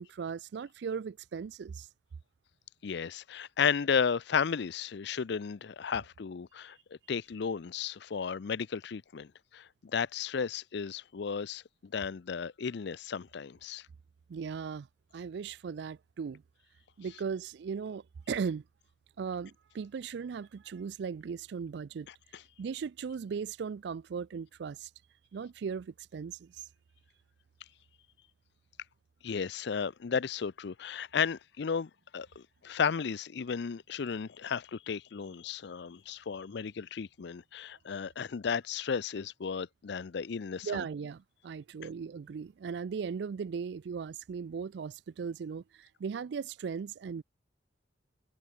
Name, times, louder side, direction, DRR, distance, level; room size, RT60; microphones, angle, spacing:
voice 1, 0.0-1.9 14.3-14.9 15.1-16.4 17.0-18.6 19.2-22.1 22.6-24.9 25.3-26.6 40.6-47.2, right 6 dB, 60° right, 0.3 m, -38 dB
voice 2, 2.8-6.8 7.1-13.8 29.2-40.8, left 6 dB, 60° left, 0.5 m, -34 dB
head